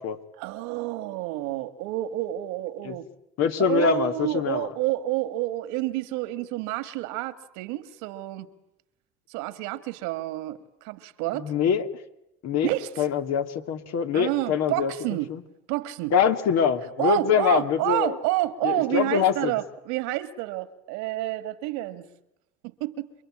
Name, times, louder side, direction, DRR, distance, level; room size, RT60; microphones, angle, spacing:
voice 1, 0.4-3.1 3.7-8.5 9.3-11.5 12.6-13.1 14.1-15.3 15.7-16.1 17.0-22.1 22.6-23.1, right 16 dB, 85° right, 2.0 m, -29 dB
voice 2, 3.4-4.7 11.4-11.9 12.4-12.7 13.0-14.9 15.3-15.4 16.1-18.2 18.6-19.5, left 7 dB, 60° left, 2.7 m, -24 dB
28.5 x 23.0 x 8.8 m
supercardioid pair, 95°, 29 cm